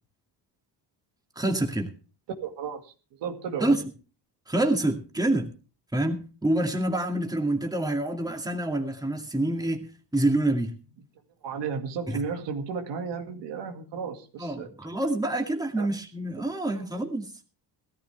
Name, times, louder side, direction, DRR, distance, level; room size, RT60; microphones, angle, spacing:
voice 1, 1.4-1.9 3.6-3.8 4.5-5.5 5.9-10.7 12.1-12.2 14.4-17.3, right 1 dB, 10° right, 2.3 m, -27 dB
voice 2, 2.3-3.7 11.4-14.7 15.8-15.9 16.8-17.0, right 6 dB, 85° right, 2.2 m, -34 dB
17.0 x 13.5 x 3.4 m
cardioid pair, 100°, 42 cm